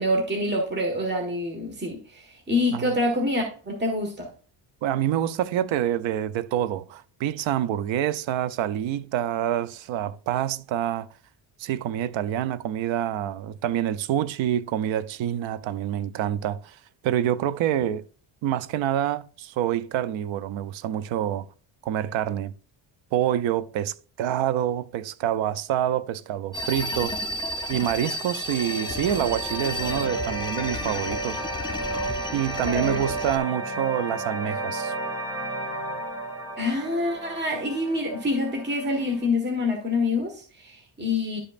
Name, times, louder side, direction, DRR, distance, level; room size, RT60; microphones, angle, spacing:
voice 1, 0.0-4.3 32.6-33.0 36.6-41.4, left 2 dB, 25° right, 1.5 m, -26 dB
voice 2, 4.8-11.1 11.6-18.0 18.4-21.5 21.8-22.5 23.1-27.2 27.7-31.4 32.3-34.9, right 11 dB, 80° right, 0.7 m, -27 dB
sound 1, 26.5-33.4, left 1 dB, 10° left, 0.6 m, -32 dB
sound 2, 28.2-39.3, right 2 dB, 5° right, 1.8 m, -33 dB
11.0 x 5.2 x 2.5 m
cardioid pair, 130°, 45 cm